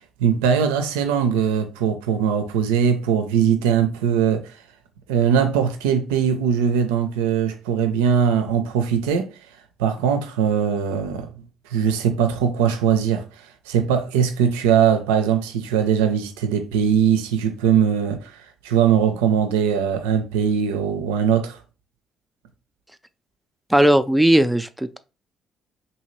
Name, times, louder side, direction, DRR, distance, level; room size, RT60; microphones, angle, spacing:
voice 1, 0.2-4.5 5.1-9.3 9.8-11.3 11.7-13.2 13.7-18.3 18.6-21.6, right 8 dB, 85° right, 0.4 m, -20 dB
voice 2, 23.7-25.0, right 1 dB, 5° right, 0.4 m, -17 dB
2.8 x 2.7 x 3.0 m
hypercardioid pair, 50°, 0 cm